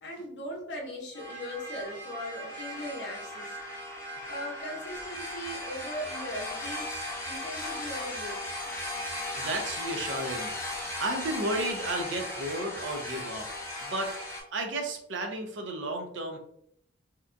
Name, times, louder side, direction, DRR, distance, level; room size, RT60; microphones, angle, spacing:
voice 1, 0.0-3.6 4.3-8.5, equal, 55° left, 0 dB, 0.6 m, -39 dB
sound 1, 1.1-14.4, left 1 dB, 15° left, 0.4 m, -37 dB
voice 2, 9.4-13.5 13.8-14.1 14.5-16.4, right 1 dB, 65° right, 4 dB, 0.5 m, -33 dB
2.8 x 2.2 x 2.4 m, 0.69 s
head